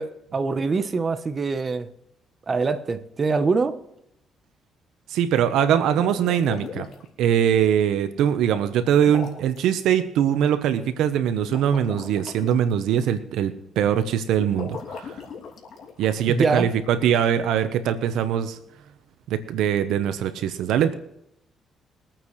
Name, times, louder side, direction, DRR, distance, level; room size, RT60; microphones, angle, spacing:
voice 1, 0.0-1.9 2.5-3.8 16.3-16.7, right 4 dB, 35° right, 1.0 m, -24 dB
voice 2, 5.1-6.9 7.2-15.2 16.0-18.6 19.3-20.9, right 9 dB, 85° right, 1.0 m, -22 dB
sound 1, 5.9-7.1 9.0-9.6 11.4-12.5 14.5-16.2, left 5 dB, 65° left, 2.8 m, -37 dB
23.0 x 8.9 x 3.3 m
cardioid pair, 90°, 0 cm